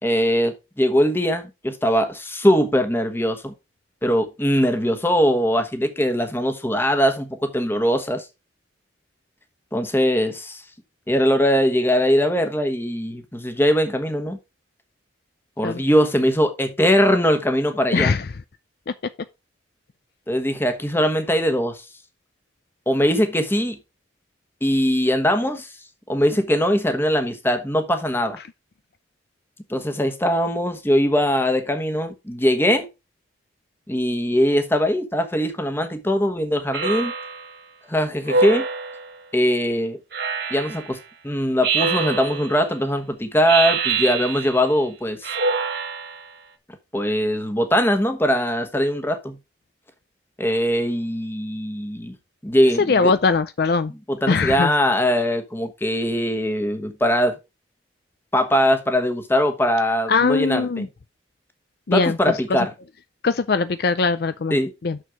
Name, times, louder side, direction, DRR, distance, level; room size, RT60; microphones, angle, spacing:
voice 1, 0.0-3.5 4.0-8.3 9.7-10.6 11.1-14.4 15.6-18.1 20.3-21.8 22.9-23.8 24.6-25.7 26.1-28.4 29.7-32.9 33.9-37.1 37.9-38.7 39.3-40.0 40.5-41.0 41.2-45.3 46.9-49.4 50.4-52.1 52.4-53.1 54.1-57.3 58.3-60.9 61.9-62.7 64.5-64.7, equal, 10° left, 1.2 m, -21 dB
voice 2, 17.9-18.3 52.8-53.9 54.3-54.7 60.1-60.9 61.9-62.2 63.2-64.6 64.8-65.0, left 4 dB, 55° left, 0.5 m, -20 dB
Speech synthesizer, 36.7-37.5 38.3-39.1 40.1-40.9 41.6-42.6 43.4-44.7 45.2-46.3, right 4 dB, 55° right, 1.6 m, -25 dB
6.5 x 6.4 x 4.8 m
head